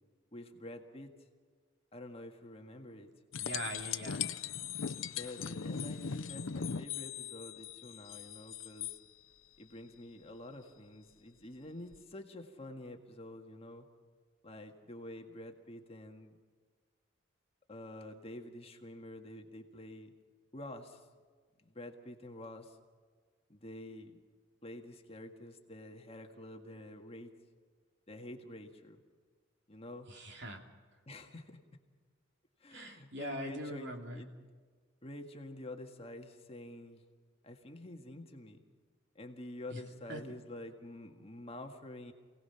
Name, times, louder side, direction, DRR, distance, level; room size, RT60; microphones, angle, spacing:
voice 1, 0.3-1.1 1.9-3.1 5.1-9.0 9.6-13.9 14.4-16.3 17.7-20.1 20.5-21.0 21.6-22.8 23.5-24.2 24.6-27.3 28.1-29.0 29.7-30.1 31.1-31.6 32.6-34.3 35.0-37.0 37.4-38.6 39.2-42.1, left 1 dB, 30° left, 4 dB, 1.8 m, -48 dB
sound 1, 3.3-9.0 11.9-12.0, left 7 dB, 85° left, 0.7 m, -39 dB
voice 2, 3.4-4.3 30.1-30.6 32.7-34.2 39.7-39.8 40.1-40.2, right 1 dB, 60° right, 3 dB, 2.9 m, -42 dB
28.0 x 18.5 x 5.8 m, 1.6 s
head